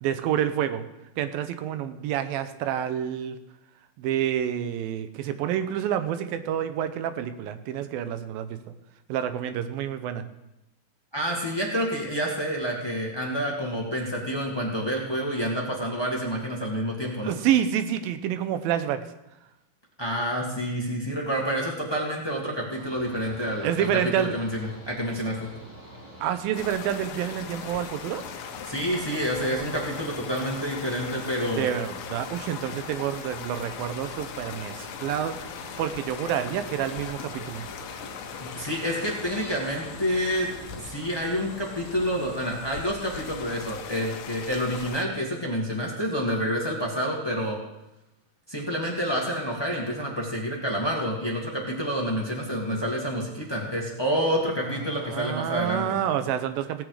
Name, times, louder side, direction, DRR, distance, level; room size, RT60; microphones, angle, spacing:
voice 1, 0.0-0.9 1.2-3.4 4.0-8.6 9.1-10.3 17.2-19.1 23.6-24.4 26.2-28.3 31.6-35.4 35.8-37.7 54.7-56.9, right 10 dB, 80° right, 10 dB, 2.5 m, -28 dB
voice 2, 11.1-17.3 20.0-23.9 24.2-25.5 28.6-31.7 38.4-40.5 40.8-47.6 48.5-55.8, equal, 35° left, -2 dB, 0.4 m, -28 dB
Mechanical fan, 22.7-42.3, right 1 dB, 10° right, 1.4 m, -46 dB
sound 1, 26.5-45.0, left 8 dB, 80° left, 2.7 m, -40 dB
18.0 x 7.7 x 4.9 m, 0.91 s
omnidirectional pair, 4.2 m